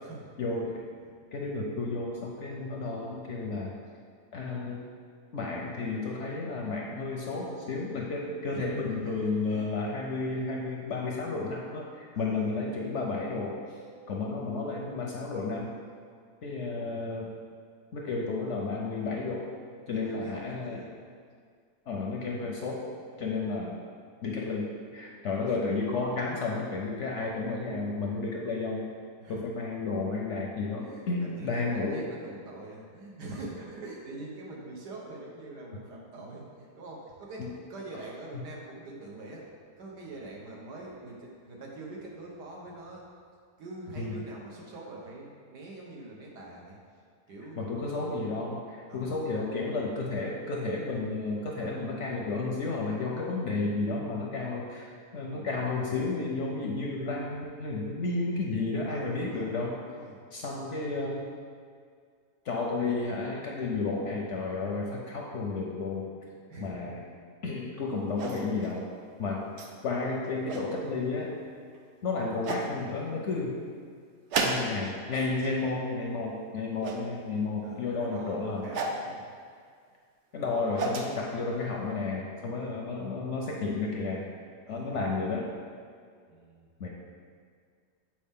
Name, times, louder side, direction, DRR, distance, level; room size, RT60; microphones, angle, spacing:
voice 1, 0.4-0.8 1.3-3.7 4.3-4.9 5.3-13.6 14.1-15.7 16.4-17.3 17.9-19.5 19.9-20.8 21.9-22.9 23.2-23.8 24.2-28.9 29.3-32.0 37.4-37.5 44.0-44.2 47.6-59.8 60.3-61.2 62.4-66.1 66.6-67.0 67.4-68.9 69.2-69.5 69.8-71.3 72.0-73.6 74.4-78.7 80.3-84.3 84.7-85.5 86.8-86.9, left 3 dB, 65° left, -1 dB, 0.8 m, -32 dB
voice 2, 8.5-9.7 12.1-12.5 19.9-20.9 25.5-25.6 29.2-29.4 30.8-39.5 39.8-43.1 43.6-46.8 47.3-48.0 48.9-49.3 55.3-55.6 58.9-60.2 66.1-66.8 69.4-69.6 77.6-79.3 80.6-80.7 84.7-85.1 86.3-86.7, right 2 dB, 85° right, -3 dB, 1.7 m, -44 dB
sound 1, 68.2-68.7 69.6-69.7 70.2-70.7 71.7-71.8 72.4-72.7 74.3-75.0 75.3-75.7 76.8-77.0 78.7-79.0 80.4-81.1, right 3 dB, 65° right, 0.7 m, -32 dB
7.5 x 4.5 x 3.6 m, 2.1 s
omnidirectional pair, 1.7 m